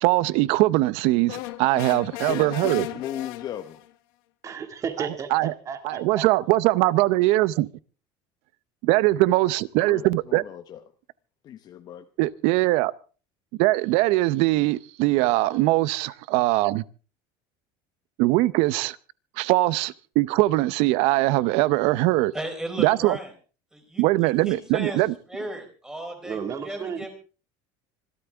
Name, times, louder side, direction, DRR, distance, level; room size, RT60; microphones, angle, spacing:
voice 1, 0.0-2.9 5.3-5.5 5.8-7.7 8.8-10.4 12.2-12.9 13.6-16.8 18.2-19.0 19.4-22.3 22.8-23.2 24.0-25.1, right 18 dB, 60° right, 0.7 m, -21 dB
sound 1, 1.3-3.9, left 16 dB, 75° left, 1.2 m, -36 dB
voice 2, 2.0-3.8 9.9-10.8 11.4-12.1, left 10 dB, 35° left, 0.8 m, -36 dB
voice 3, 4.4-6.3 26.2-27.1, right 6 dB, 25° right, 2.1 m, -33 dB
voice 4, 22.3-23.3 23.7-25.0 25.3-27.1, right 1 dB, 5° right, 4.0 m, -35 dB
26.0 x 12.5 x 3.5 m
cardioid pair, 155°, 11 cm